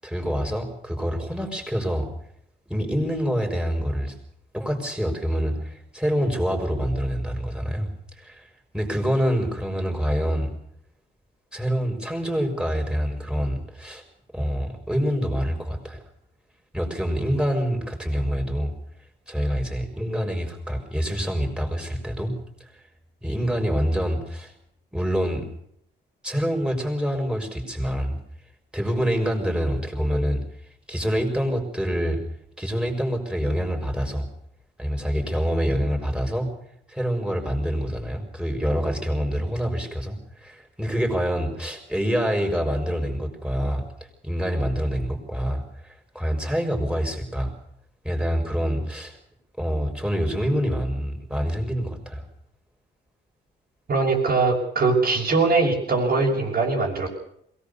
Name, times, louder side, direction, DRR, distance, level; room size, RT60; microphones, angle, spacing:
voice 1, 0.0-2.1 2.7-4.1 4.5-7.9 8.2-8.5 8.7-10.5 11.5-14.0 14.3-16.0 16.7-18.7 19.3-22.7 23.2-24.5 24.9-25.5 26.2-28.2 28.7-30.4 30.9-32.2 32.6-34.3 34.8-36.5 36.9-43.8 44.2-47.5 48.0-49.2 49.6-52.2, equal, 5° right, 3 dB, 6.0 m, -26 dB
voice 2, 53.9-57.1, right 3 dB, 50° right, -3 dB, 6.1 m, -21 dB
22.0 x 18.5 x 7.1 m, 0.71 s
cardioid pair, 90°, 20 cm